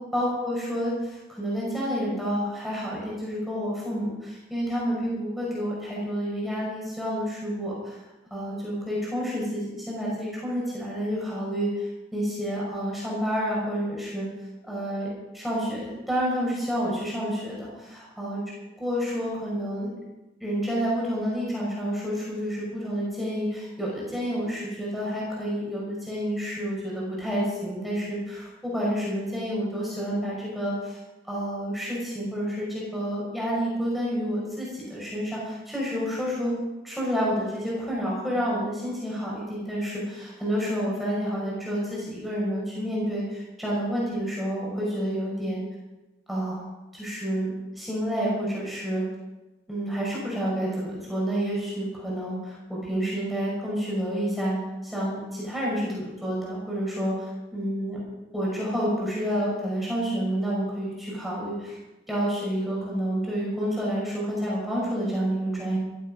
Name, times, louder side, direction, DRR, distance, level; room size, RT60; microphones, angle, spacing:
voice 1, 0.1-8.0 8.3-14.3 14.6-15.1 15.3-18.4 18.8-19.9 20.4-31.0 31.3-36.6 36.8-45.6 46.3-46.6 46.9-49.0 49.7-58.0 58.3-61.8 62.1-65.8, equal, ahead, -6 dB, 5.3 m, -29 dB
15.0 x 14.0 x 5.4 m, 1.1 s
head